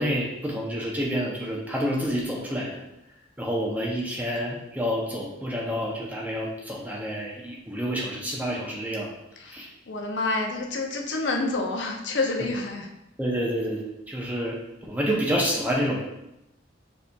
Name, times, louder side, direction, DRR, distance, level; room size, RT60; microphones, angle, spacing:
voice 1, 0.0-2.7 3.4-9.1 9.5-9.7 13.2-14.6 14.8-16.0, equal, 10° right, -3 dB, 0.5 m, -28 dB
voice 2, 9.4-12.9, left 2 dB, 75° left, 2 dB, 0.6 m, -28 dB
6.6 x 2.7 x 2.3 m, 0.89 s
head